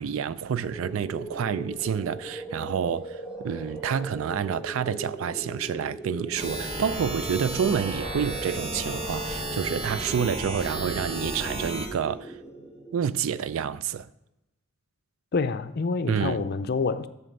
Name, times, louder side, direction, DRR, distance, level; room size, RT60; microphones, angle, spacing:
voice 1, 0.0-12.4 12.9-14.1 16.1-16.5, right 7 dB, 80° right, 0.4 m, -29 dB
sound 1, 0.6-13.4, right 1 dB, 5° right, 2.2 m, -39 dB
sound 2, 6.4-11.9, right 1 dB, 30° right, 1.2 m, -33 dB
voice 2, 15.3-17.1, left 4 dB, 50° left, 0.5 m, -27 dB
7.6 x 7.5 x 5.2 m
head